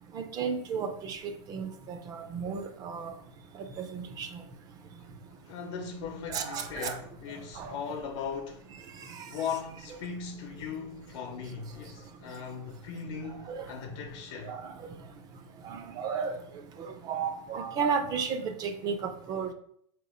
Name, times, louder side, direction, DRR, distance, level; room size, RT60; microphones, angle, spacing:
voice 1, 0.1-3.1 3.9-4.3 6.3-7.0 7.6-7.7 13.5-13.6 14.4-14.7 15.6-16.4 17.1-19.0 19.3-19.5, right 6 dB, 25° right, 0.4 m, -33 dB
voice 2, 5.5-8.7 9.3-14.6, left 6 dB, 60° left, 0.7 m, -38 dB
3.7 x 3.0 x 4.8 m
supercardioid pair, 160°, 16 cm